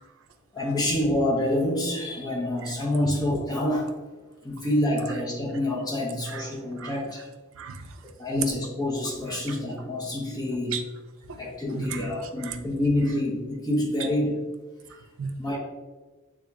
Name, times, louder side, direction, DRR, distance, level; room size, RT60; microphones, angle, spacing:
voice 1, 0.5-3.9 4.4-7.3 8.2-10.7 11.4-14.3 15.4-15.6, left 1 dB, 20° left, -2 dB, 0.7 m, -27 dB
voice 2, 6.3-7.2 7.6-8.4 9.3-9.6 10.5-10.8 11.3-11.4 11.7-12.6 14.0-14.1 14.9-15.4, right 6 dB, 70° right, 6 dB, 0.4 m, -36 dB
3.6 x 2.8 x 3.5 m, 1.3 s
head